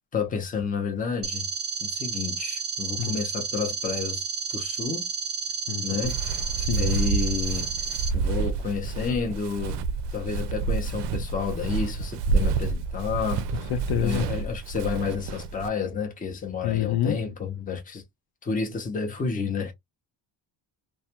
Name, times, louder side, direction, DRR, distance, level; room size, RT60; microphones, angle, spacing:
voice 1, 0.1-1.5 1.8-4.2 4.5-5.1 5.8-6.3 6.7-7.7 8.1-9.8 10.1-13.4 14.0-18.0 18.4-19.7, left 5 dB, 20° left, 0.6 m, -30 dB
sound 1, 1.2-8.1, right 5 dB, 25° right, 0.6 m, -31 dB
voice 2, 5.7-6.1 6.6-6.9 13.5-14.3 16.6-17.2, left 10 dB, 60° left, 0.6 m, -27 dB
Walk footsteps, 6.0-15.7, right 4 dB, 70° right, 0.5 m, -29 dB
2.3 x 2.2 x 2.8 m
cardioid pair, 160°, 43 cm